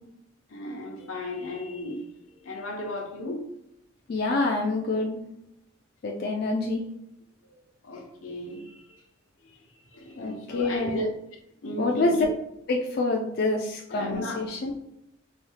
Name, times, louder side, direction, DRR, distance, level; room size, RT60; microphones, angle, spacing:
voice 1, 0.5-3.5 7.4-7.6 7.8-8.9 9.4-9.6 9.9-11.1 11.6-12.3 13.9-14.4, left 1 dB, 85° left, 1 dB, 0.8 m, -35 dB
voice 2, 4.1-5.3 6.0-6.9 10.2-11.0 11.8-12.2 12.7-14.7, left 2 dB, 50° left, 0 dB, 0.4 m, -27 dB
4.1 x 2.3 x 3.2 m, 0.81 s
head